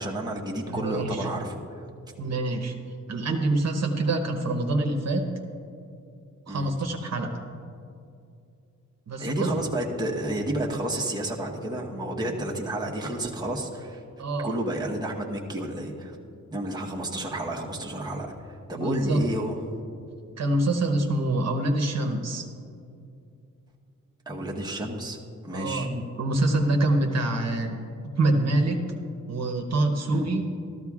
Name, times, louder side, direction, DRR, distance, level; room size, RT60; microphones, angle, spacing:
voice 1, 0.0-1.8 6.5-6.7 9.2-14.0 14.4-16.2 16.5-19.6 24.3-25.2 25.4-25.9 30.1-30.3, right 1 dB, 15° right, -2 dB, 1.0 m, -31 dB
voice 2, 0.7-1.2 2.2-2.7 3.1-5.3 6.5-7.4 9.1-9.5 14.2-14.5 18.7-19.2 20.4-22.5 25.5-27.8 28.1-28.9 29.3-30.5, right 2 dB, 55° right, 3 dB, 1.0 m, -26 dB
13.5 x 13.5 x 2.4 m, 2.6 s
wide cardioid pair, 145°, 31 cm